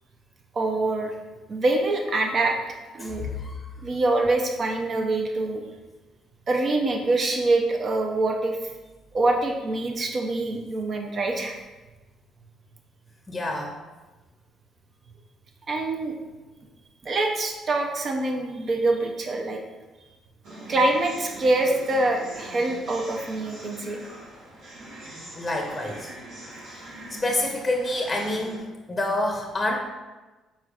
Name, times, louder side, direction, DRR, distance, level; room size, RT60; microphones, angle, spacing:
voice 1, 0.5-1.1 1.5-2.6 2.9-3.3 3.8-5.6 6.5-8.6 9.1-11.6 15.7-16.1 17.0-19.6 20.7-24.0, right 2 dB, 45° right, 2 dB, 0.7 m, -25 dB
voice 2, 3.0-3.5 13.3-13.7 25.4-26.1 27.1-29.8, left 1 dB, 20° left, 1 dB, 0.7 m, -27 dB
sound 1, 20.4-28.6, right 1 dB, 90° right, 1.3 m, -42 dB
4.5 x 4.3 x 2.5 m, 1.2 s
supercardioid pair, 70°, 0 cm